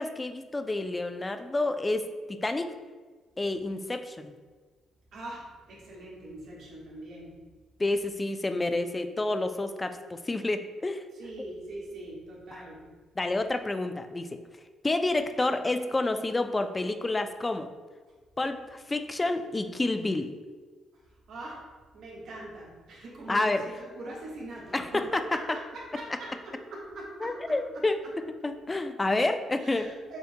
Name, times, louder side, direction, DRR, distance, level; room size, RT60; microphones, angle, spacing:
voice 1, 0.0-2.7 3.4-4.3 7.8-11.0 13.2-14.4 14.8-17.7 18.4-20.3 23.3-23.7 24.7-25.2 27.2-28.0 28.4-29.9, left 2 dB, 20° left, 8 dB, 0.3 m, -29 dB
voice 2, 5.1-7.4 11.2-12.8 21.3-21.6 21.9-27.8 29.6-30.2, right 1 dB, 70° right, -5 dB, 1.4 m, -42 dB
6.4 x 2.7 x 2.2 m, 1.4 s
cardioid pair, 90°, 0 cm